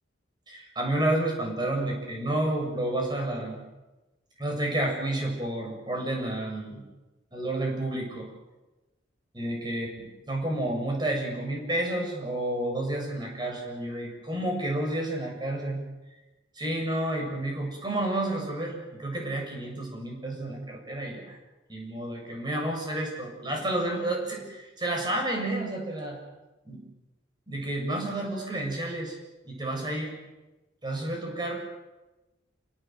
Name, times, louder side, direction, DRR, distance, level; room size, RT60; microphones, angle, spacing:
voice 1, 0.5-3.6 4.4-6.8 7.3-8.3 9.3-15.8 16.6-21.4 21.7-26.2 26.7-26.8 27.5-29.2 29.4-30.2 30.8-31.6, right 1 dB, 25° right, 1 dB, 7.1 m, -30 dB
29.5 x 18.5 x 7.9 m, 1.1 s
head